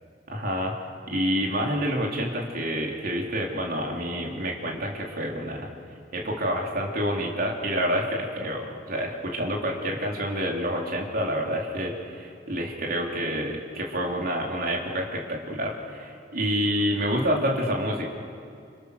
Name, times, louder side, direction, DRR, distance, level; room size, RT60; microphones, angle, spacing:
voice 1, 0.3-0.7 1.1-5.7 6.1-18.1, equal, 55° right, -1 dB, 3.6 m, -28 dB
29.0 x 28.0 x 6.7 m, 2.4 s
head